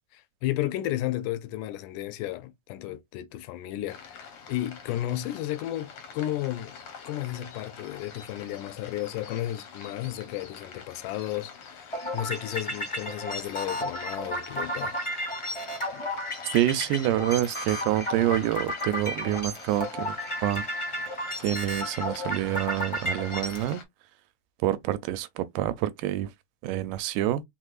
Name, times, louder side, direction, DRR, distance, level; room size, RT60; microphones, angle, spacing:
voice 1, 0.1-6.8 7.1-15.0 15.9-16.0, left 14 dB, 85° left, 2.1 m, -33 dB
sound 1, 3.9-23.8, left 6 dB, 60° left, 1.6 m, -46 dB
sound 2, 11.9-23.7, equal, 15° left, 1.4 m, -33 dB
voice 2, 16.5-20.2 20.4-20.6 21.4-23.8 24.6-26.3 26.6-27.4, right 13 dB, 85° right, 2.1 m, -27 dB
4.8 x 3.7 x 2.4 m
omnidirectional pair, 3.7 m